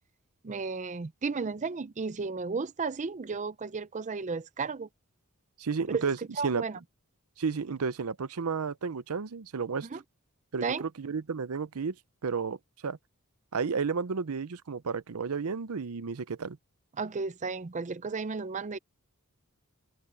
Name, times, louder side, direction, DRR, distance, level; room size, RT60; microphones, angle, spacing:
voice 1, 0.4-4.9 5.9-6.1 6.4-6.8 9.9-10.0 10.6-10.8 17.0-18.8, right 4 dB, 35° right, 0.5 m, -33 dB
voice 2, 5.6-6.2 6.4-6.6 7.4-9.9 10.5-12.0 12.2-12.6 12.8-13.0 13.5-16.6, right 5 dB, 80° right, 0.6 m, -32 dB
open air
head